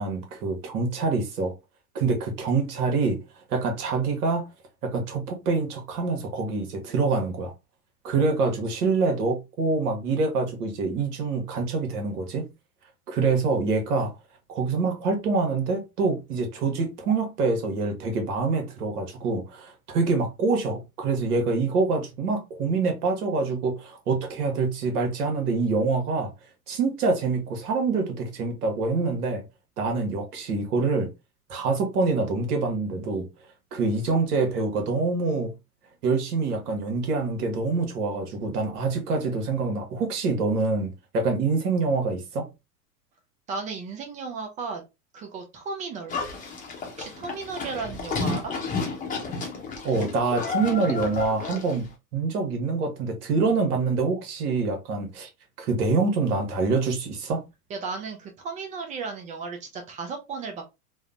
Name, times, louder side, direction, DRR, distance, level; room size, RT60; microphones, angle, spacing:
voice 1, 0.0-1.5 1.9-3.2 3.5-4.4 4.8-7.5 8.0-12.5 13.1-14.1 14.5-26.3 26.7-29.4 29.8-31.1 31.5-33.3 33.7-35.5 36.0-42.5 49.8-55.3 55.6-57.4, right 4 dB, 75° right, 1.1 m, -25 dB
voice 2, 43.5-44.8 45.1-46.2 46.9-48.5 57.7-60.7, right 4 dB, 20° right, 0.3 m, -35 dB
Livestock farm animals working animals, 46.1-51.9, left 4 dB, 20° left, 0.7 m, -32 dB
3.4 x 2.0 x 2.4 m
hypercardioid pair, 105°, 46 cm